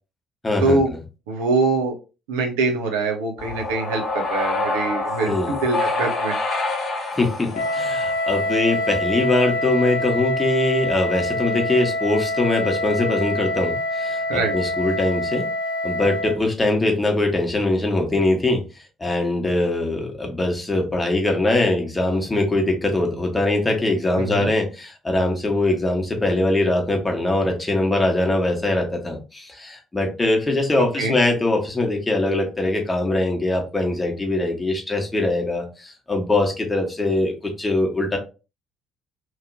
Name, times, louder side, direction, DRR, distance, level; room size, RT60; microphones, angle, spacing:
voice 1, 0.4-0.8 5.2-5.6 7.1-15.5 15.8-18.6 19.0-38.2, left 2 dB, 20° left, 1 dB, 1.0 m, -22 dB
voice 2, 1.3-1.9 2.3-6.3 14.3-14.5 24.2-24.5 30.8-31.1, right 3 dB, 70° right, 3 dB, 0.6 m, -23 dB
sound 1, 3.4-8.7, left 2 dB, 50° left, 1.0 m, -27 dB
Wind instrument woodwind instrument, 7.5-16.4, left 1 dB, 75° left, 0.4 m, -25 dB
3.0 x 2.7 x 2.6 m, 0.31 s
figure-of-eight pair, 50°, 0 cm